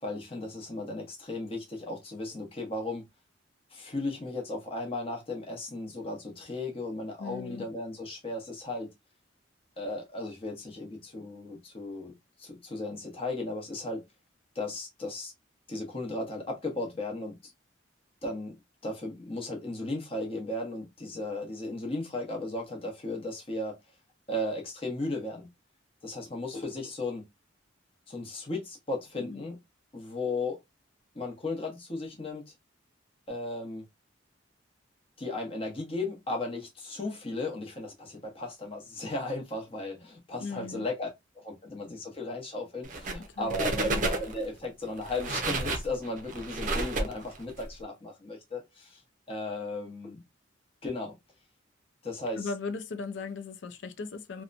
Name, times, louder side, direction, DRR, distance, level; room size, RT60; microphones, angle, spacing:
voice 1, 0.0-3.0 3.7-8.9 9.8-14.0 14.5-15.3 15.7-17.5 18.2-18.6 18.8-23.8 24.3-25.5 26.0-27.3 28.1-29.6 29.9-30.6 31.1-32.5 33.3-33.8 35.2-41.1 41.3-49.0 49.3-50.2 50.8-51.2 52.0-52.5, left 2 dB, 30° left, 0.8 m, -35 dB
voice 2, 7.2-7.7 29.2-29.4 40.4-40.9 43.3-44.1 52.3-54.4, left 4 dB, 70° left, 0.5 m, -38 dB
sound 1, 42.8-43.2 43.5-44.5 45.0-47.6, right 2 dB, 40° right, 0.5 m, -31 dB
2.8 x 2.2 x 2.4 m
head